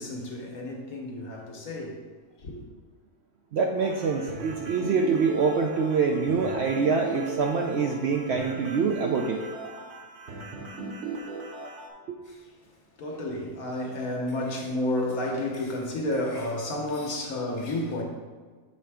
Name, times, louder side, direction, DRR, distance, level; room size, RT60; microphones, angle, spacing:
voice 1, 0.0-2.0 2.4-2.7 12.3-12.5 13.0-18.0, left 1 dB, 75° left, 1.5 m, -31 dB
voice 2, 3.5-9.4, right 5 dB, 65° right, 0.6 m, -25 dB
sound 1, 3.8-11.9, right 3 dB, 50° right, 1.1 m, -38 dB
7.3 x 3.4 x 4.8 m
omnidirectional pair, 1.5 m